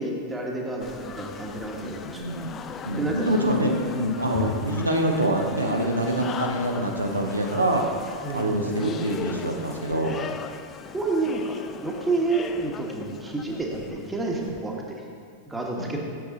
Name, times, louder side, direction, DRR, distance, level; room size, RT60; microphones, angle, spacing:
voice 1, 0.0-2.2 3.0-3.3 8.2-8.8 10.9-11.6 11.8-15.0 15.5-16.0, right 3 dB, 10° right, -1 dB, 1.2 m, -29 dB
sound 1, 0.8-14.6, left 6 dB, 25° left, 0.3 m, -38 dB
voice 2, 2.1-2.6 2.8-7.9 8.3-10.2 15.8-16.0, right 1 dB, 80° right, 1 dB, 0.7 m, -25 dB
7.7 x 6.7 x 3.9 m, 2.1 s
figure-of-eight pair, 90°, 0 cm